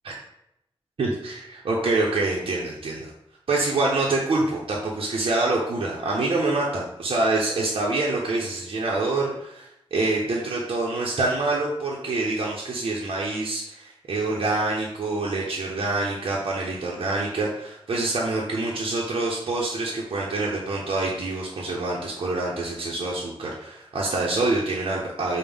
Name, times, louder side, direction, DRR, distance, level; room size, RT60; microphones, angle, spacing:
voice 1, 1.0-3.1 3.5-25.4, right 2 dB, 65° right, -4 dB, 0.6 m, -26 dB
5.2 x 2.1 x 3.4 m, 0.81 s
wide cardioid pair, 150°, 10 cm